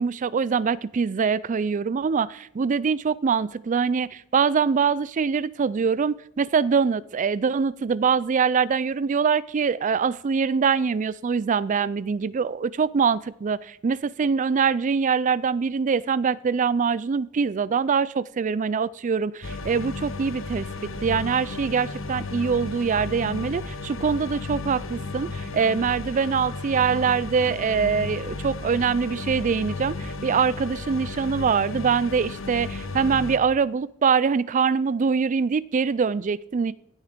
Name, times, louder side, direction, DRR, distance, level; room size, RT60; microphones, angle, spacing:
voice 1, 0.0-20.7 21.0-36.7, right 6 dB, 40° right, 20 dB, 0.4 m, -24 dB
sound 1, 19.4-33.4, left 3 dB, 70° left, 1.1 m, -34 dB
16.0 x 7.3 x 5.1 m, 0.76 s
head